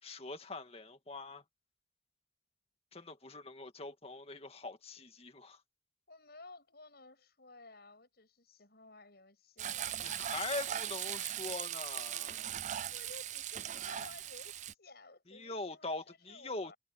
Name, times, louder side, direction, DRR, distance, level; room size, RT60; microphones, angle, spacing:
voice 1, 0.0-1.4 2.9-5.6 10.0-12.4 15.3-16.7, left 3 dB, 35° left, 2.1 m, -43 dB
voice 2, 6.1-11.4 12.9-16.8, left 3 dB, 60° left, 7.6 m, -56 dB
Frying (food), 9.6-14.7, right 11 dB, 40° right, 0.4 m, -39 dB
head